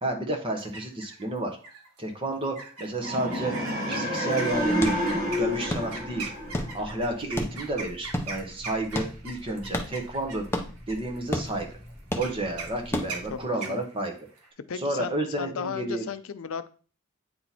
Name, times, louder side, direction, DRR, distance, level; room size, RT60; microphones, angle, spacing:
voice 1, 0.0-1.6 2.0-3.5 3.9-4.9 5.4-6.3 6.7-10.5 10.9-11.7 12.2-14.1 14.7-16.0, right 2 dB, 25° right, 3 dB, 1.0 m, -30 dB
sound 1, 0.6-1.2 1.6-2.0 2.5-14.5, right 4 dB, 90° right, 1.3 m, -40 dB
sound 2, 3.0-7.1, equal, 40° right, 1.3 m, -29 dB
sound 3, 4.4-13.4, left 1 dB, 10° left, 0.5 m, -35 dB
voice 2, 14.7-16.7, left 7 dB, 70° left, 12 dB, 0.5 m, -35 dB
8.6 x 2.9 x 4.0 m, 0.39 s
head